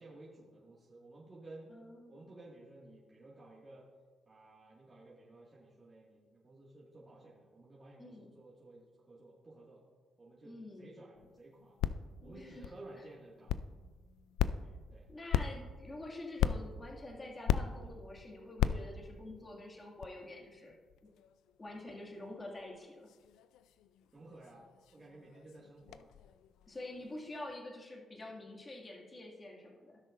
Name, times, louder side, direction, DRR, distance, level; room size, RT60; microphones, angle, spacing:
voice 1, 0.0-1.7 2.1-3.9 4.3-9.8 10.2-11.8 12.2-13.6 14.9-15.1 24.1-24.6 24.9-26.1, right 2 dB, 30° right, -6 dB, 2.0 m, -54 dB
voice 2, 1.7-2.3 8.0-8.3 10.4-10.9 12.2-13.0 15.1-20.8 21.6-23.1 26.7-30.0, left 2 dB, 25° left, -1 dB, 2.2 m, -47 dB
sound 1, 11.1-27.6, left 10 dB, 90° left, 0.3 m, -39 dB
16.0 x 6.4 x 2.6 m, 1.4 s
cardioid pair, 90°, 0 cm